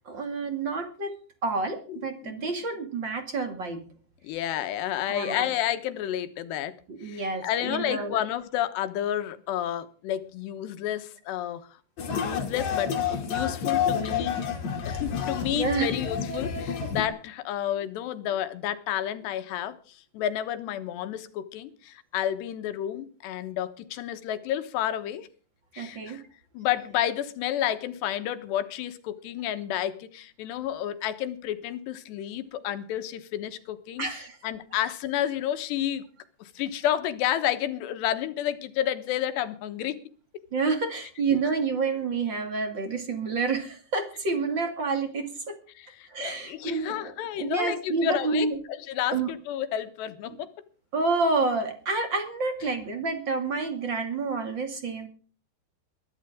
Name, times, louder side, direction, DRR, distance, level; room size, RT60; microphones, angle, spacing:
voice 1, 0.0-3.8 5.1-5.5 6.9-8.2 15.5-15.9 25.8-26.2 34.0-34.4 40.5-45.6 46.1-48.6 49.1-49.3 50.9-55.1, right 4 dB, 35° right, 6 dB, 2.4 m, -29 dB
voice 2, 1.9-2.5 4.2-6.7 7.0-11.7 12.1-14.4 14.9-25.3 25.7-26.2 26.5-34.1 34.4-36.0 36.4-40.0 45.8-50.5, left 11 dB, 80° left, 10 dB, 3.4 m, -31 dB
sound 1, 12.0-17.1, left 7 dB, 45° left, 3.5 m, -29 dB
22.0 x 12.5 x 3.7 m, 0.40 s
omnidirectional pair, 4.9 m